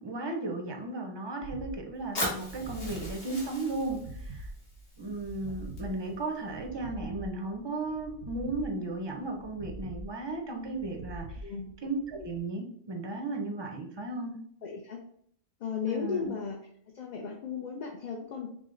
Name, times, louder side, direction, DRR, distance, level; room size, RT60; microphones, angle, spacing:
voice 1, 0.0-4.5 5.0-11.4 11.8-14.4 15.9-16.3, right 2 dB, 30° right, 3 dB, 0.5 m, -35 dB
sound 1, 1.4-12.4, right 1 dB, 80° right, 0.9 m, -44 dB
Fire, 2.2-6.2, left 1 dB, 70° left, 1.5 m, -39 dB
voice 2, 11.4-11.7 14.6-15.0 15.6-16.6 16.9-18.5, left 6 dB, 50° left, 1 dB, 0.6 m, -35 dB
4.8 x 2.1 x 3.7 m, 0.65 s
omnidirectional pair, 1.1 m